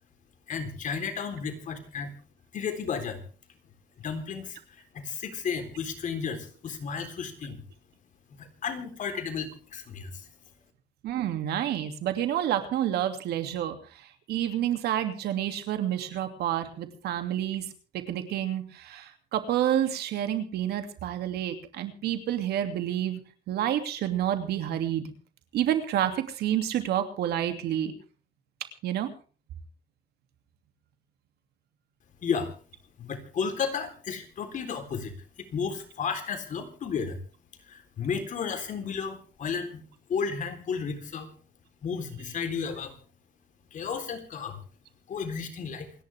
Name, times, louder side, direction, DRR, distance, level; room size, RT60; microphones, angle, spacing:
voice 1, 0.5-2.1 2.5-3.2 4.0-7.6 8.4-10.3 32.2-32.5 33.0-35.1 35.4-37.2 37.7-39.8 40.1-41.3 41.8-43.0 43.7-44.6 45.1-45.9, left 6 dB, 50° left, 6 dB, 3.9 m, -33 dB
voice 2, 11.0-17.7 17.9-25.1 25.5-27.9 28.8-29.1, right 11 dB, 75° right, 7 dB, 2.8 m, -29 dB
28.0 x 11.0 x 3.6 m, 0.38 s
cardioid pair, 110°, 17 cm